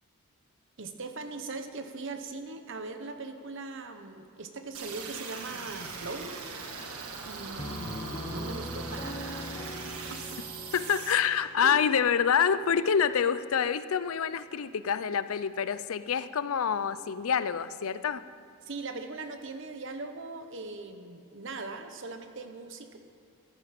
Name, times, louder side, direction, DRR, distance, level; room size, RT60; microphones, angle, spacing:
voice 1, 0.8-6.4 7.2-10.4 11.6-11.8 18.6-23.0, right 3 dB, 55° right, 7 dB, 1.0 m, -40 dB
sound 1, 4.7-11.1, right 4 dB, 85° right, 1.5 m, -40 dB
Piano, 7.6-13.1, left 1 dB, 20° left, 1.1 m, -41 dB
voice 2, 10.7-18.2, left 7 dB, 70° left, 14 dB, 0.5 m, -27 dB
14.0 x 11.0 x 5.9 m, 2.6 s
head